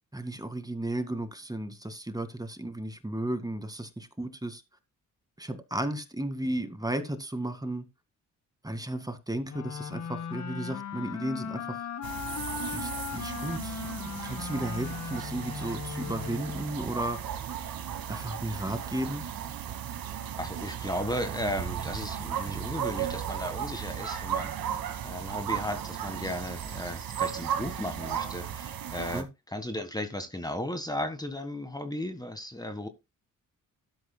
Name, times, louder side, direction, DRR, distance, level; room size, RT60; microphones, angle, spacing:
voice 1, 0.1-4.6 5.4-7.8 8.6-11.9 12.6-17.2 18.1-19.2 29.1-29.3, right 1 dB, 10° right, 2.0 m, -34 dB
sound 1, 9.5-16.9, left 7 dB, 55° left, 1.7 m, -38 dB
sound 2, 12.0-29.2, right 9 dB, 80° right, 2.1 m, -35 dB
voice 2, 20.3-24.8 25.0-32.9, left 1 dB, 10° left, 1.7 m, -35 dB
13.0 x 10.5 x 2.3 m
cardioid pair, 75°, 34 cm